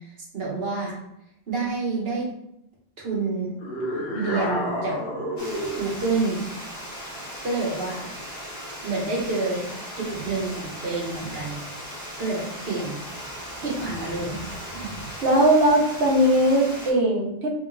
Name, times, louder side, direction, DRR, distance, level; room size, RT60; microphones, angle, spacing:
voice 1, 0.3-0.9 1.5-2.3 3.0-3.5 4.1-5.0 5.8-6.4 7.4-8.1 8.8-9.7 10.0-11.6 12.2-13.0 13.6-14.4 14.7-14.9, right 3 dB, 65° right, -3 dB, 1.4 m, -28 dB
sound 1, 3.6-5.9, equal, 65° left, 1.0 m, -29 dB
Water, 5.4-16.9, equal, 40° left, 1.3 m, -37 dB
voice 2, 15.2-17.5, right 1 dB, 90° right, -1 dB, 1.2 m, -19 dB
3.4 x 3.1 x 3.8 m, 0.81 s
omnidirectional pair, 1.1 m